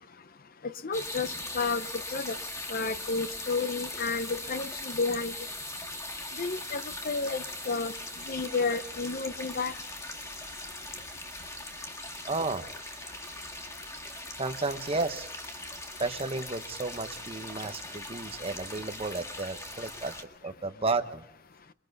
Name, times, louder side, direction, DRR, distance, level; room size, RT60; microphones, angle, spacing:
voice 1, 0.8-2.4 2.7-5.3 6.4-7.9 8.3-9.7, left 4 dB, 45° left, 0.8 m, -31 dB
sound 1, 0.9-20.2, left 1 dB, 15° left, 1.8 m, -40 dB
voice 2, 12.3-12.7 14.4-15.3 16.0-20.1 20.4-21.2, right 3 dB, 30° right, 1.0 m, -32 dB
28.5 x 22.5 x 4.0 m
head